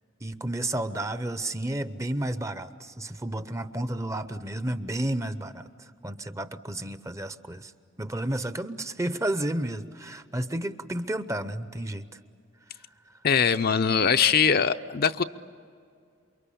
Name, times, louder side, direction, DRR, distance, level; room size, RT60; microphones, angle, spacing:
voice 1, 0.2-7.7 8.0-12.2 12.7-13.2, right 1 dB, 15° right, 12 dB, 0.7 m, -32 dB
voice 2, 13.2-15.2, left 6 dB, 50° left, 9 dB, 0.6 m, -22 dB
28.5 x 23.5 x 8.5 m, 2.3 s
head